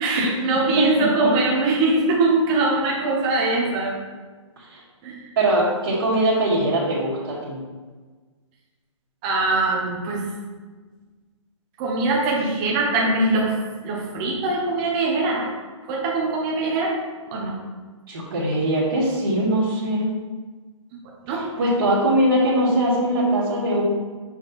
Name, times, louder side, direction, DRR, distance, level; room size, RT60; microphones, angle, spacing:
voice 1, 0.0-3.9 5.0-5.3 9.2-10.2 11.8-13.6 13.8-15.5 15.9-16.9 17.3-17.5 21.2-21.4, right 3 dB, 15° right, -2 dB, 0.8 m, -22 dB
voice 2, 0.6-1.3 4.6-4.8 5.4-7.6 18.1-20.1 21.3-23.8, right 1 dB, 45° right, -9 dB, 1.7 m, -22 dB
6.8 x 4.4 x 4.0 m, 1.4 s
hypercardioid pair, 175°, 16 cm